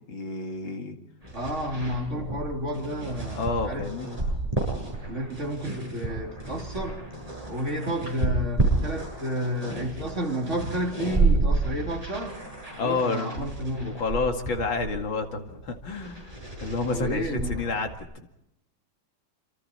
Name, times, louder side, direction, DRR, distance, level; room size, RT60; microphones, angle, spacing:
voice 1, 0.1-1.0 3.3-4.1 12.8-13.5 13.8-18.3, left 3 dB, 80° left, 4 dB, 3.0 m, -30 dB
sound 1, 1.2-18.0, right 3 dB, 15° right, 7.6 m, -31 dB
voice 2, 1.3-4.2 5.1-7.0 7.5-12.4 12.7-14.0 16.9-17.6, equal, 35° right, 1 dB, 3.4 m, -31 dB
27.5 x 27.0 x 4.5 m, 0.82 s
omnidirectional pair, 2.1 m